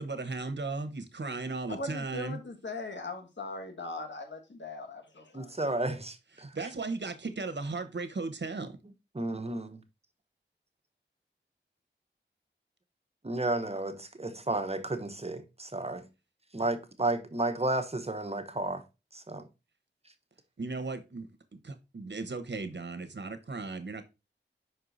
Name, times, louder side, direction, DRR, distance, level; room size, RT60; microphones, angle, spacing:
voice 1, 0.0-2.4 6.4-8.8 20.6-21.3 21.6-24.0, right 3 dB, 65° right, 1.0 m, -36 dB
voice 2, 1.7-5.5, left 2 dB, 70° left, 1.3 m, -40 dB
voice 3, 5.3-6.5 9.1-9.8 13.2-16.1 16.5-18.8 19.1-19.5, right 2 dB, 30° right, 0.9 m, -32 dB
5.6 x 4.6 x 3.9 m
wide cardioid pair, 45°, 20 cm